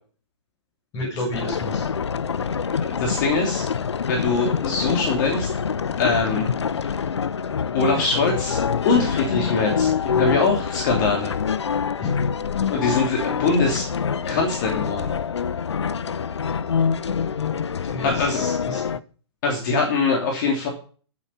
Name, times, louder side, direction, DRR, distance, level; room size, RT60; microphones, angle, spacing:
voice 1, 0.9-1.9 12.0-12.1 17.8-18.8, left 1 dB, 25° left, -4 dB, 6.6 m, -31 dB
sound 1, 1.3-19.0, left 6 dB, 70° left, 0.7 m, -25 dB
voice 2, 2.7-3.6 4.1-5.5 6.0-6.9 7.7-8.6 8.8-11.3 12.7-13.9 14.3-15.1 18.0-18.4 19.4-20.7, left 4 dB, 45° left, 0 dB, 3.0 m, -23 dB
12.0 x 7.7 x 5.5 m, 0.40 s
figure-of-eight pair, 120°, 15 cm